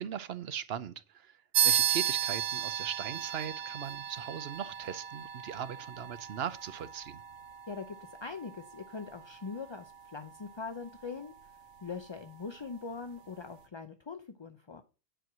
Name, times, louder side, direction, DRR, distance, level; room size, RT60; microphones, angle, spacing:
voice 1, 0.0-7.2, right 9 dB, 60° right, 0.9 m, -39 dB
sound 1, 1.5-11.5, right 9 dB, 85° right, 1.1 m, -35 dB
voice 2, 7.7-11.3 11.8-14.8, left 5 dB, 35° left, 0.4 m, -42 dB
10.0 x 4.6 x 6.0 m
omnidirectional pair, 1.2 m